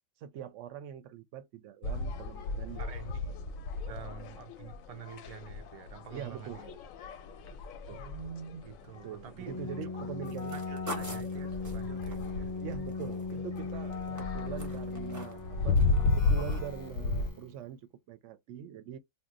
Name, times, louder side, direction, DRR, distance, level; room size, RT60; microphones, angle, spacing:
voice 1, 0.2-2.8 3.9-4.1 6.1-6.8 7.9-8.0 9.0-10.6 12.6-15.8 16.0-19.0, right 9 dB, 70° right, 0.9 m, -43 dB
sound 1, 1.8-17.3, left 3 dB, 85° left, 1.0 m, -35 dB
voice 2, 2.8-3.4 3.9-6.7 7.9-9.6 9.8-10.1 10.5-12.5, right 7 dB, 55° right, 0.4 m, -46 dB
Keyboard (musical), 9.5-17.6, left 4 dB, 25° left, 0.4 m, -38 dB
sound 2, 10.2-13.6 13.9-15.5 15.8-16.2 16.5-16.6, equal, 15° right, 0.7 m, -45 dB
2.8 x 2.1 x 3.7 m
omnidirectional pair, 1.4 m